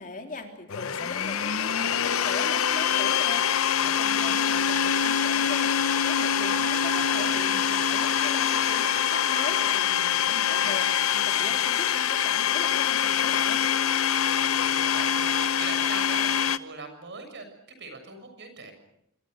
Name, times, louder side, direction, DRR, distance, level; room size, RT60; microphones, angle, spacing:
voice 1, 0.0-13.6, left 2 dB, 40° left, 4 dB, 3.6 m, -40 dB
Domestic sounds home sounds, 0.7-16.6, left 8 dB, 80° left, 0.9 m, -24 dB
sound 1, 4.7-9.7, right 3 dB, 40° right, 6.3 m, -41 dB
voice 2, 6.5-7.3 14.4-18.7, right 3 dB, 55° right, 8 dB, 6.9 m, -42 dB
26.0 x 26.0 x 6.5 m, 0.76 s
head